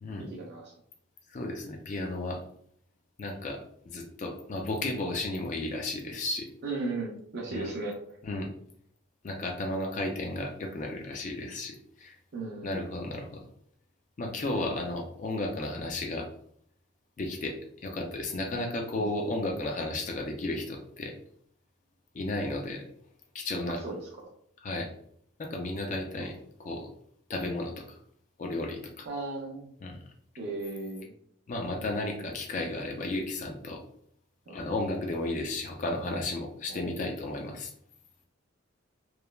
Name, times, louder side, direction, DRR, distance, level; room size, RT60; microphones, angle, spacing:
voice 1, 0.3-0.7 6.6-8.0 12.3-12.8 14.5-14.7 18.9-19.1 23.7-24.1 26.2-26.3 29.0-29.7 30.4-31.1 34.5-34.6, right 3 dB, 50° right, -2 dB, 0.5 m, -36 dB
voice 2, 1.3-2.4 3.2-3.6 3.9-6.5 7.5-7.7 8.2-8.5 9.2-12.2 12.6-13.4 14.2-16.3 17.2-17.6 17.8-21.1 22.1-22.8 23.3-23.8 24.6-24.9 25.4-26.3 26.6-26.9 27.3-28.0 28.4-29.1 29.8-30.0 31.5-33.8 34.5-37.7, left 2 dB, 35° left, 2 dB, 0.3 m, -33 dB
3.1 x 2.0 x 2.2 m, 0.65 s
head